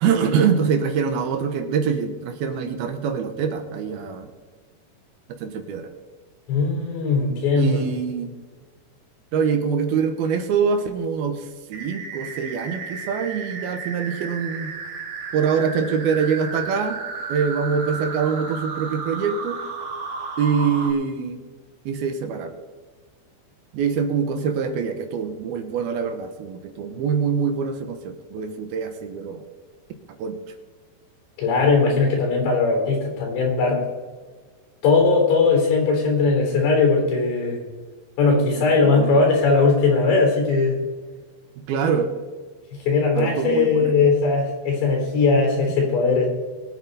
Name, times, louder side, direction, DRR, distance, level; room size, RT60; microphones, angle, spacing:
voice 1, 0.0-4.3 5.4-5.9 7.6-8.3 9.3-14.7 15.3-17.0 17.3-19.6 20.4-21.4 21.9-22.5 23.7-29.4 30.2-30.4 38.8-39.2 41.7-42.1 43.1-44.0, right 6 dB, 70° right, 7 dB, 2.7 m, -24 dB
voice 2, 6.5-7.8 31.4-33.8 34.8-37.6 38.2-40.8 42.9-46.3, left 4 dB, 90° left, 1 dB, 6.0 m, -19 dB
sound 1, 11.7-20.9, right 4 dB, 90° right, 4.4 m, -33 dB
21.5 x 8.7 x 4.1 m, 1.4 s
omnidirectional pair, 4.9 m